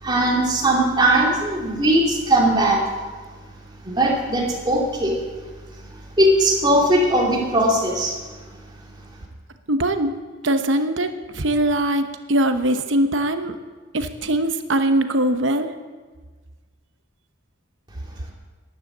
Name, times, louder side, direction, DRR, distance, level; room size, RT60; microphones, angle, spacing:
voice 1, 0.0-2.8 3.8-5.2 6.2-8.1, right 1 dB, 20° right, -2 dB, 2.8 m, -19 dB
voice 2, 9.7-10.1 10.4-11.1 11.3-13.5 13.9-15.7, right 1 dB, 65° right, 8 dB, 1.0 m, -21 dB
12.0 x 11.0 x 7.3 m, 1.4 s
head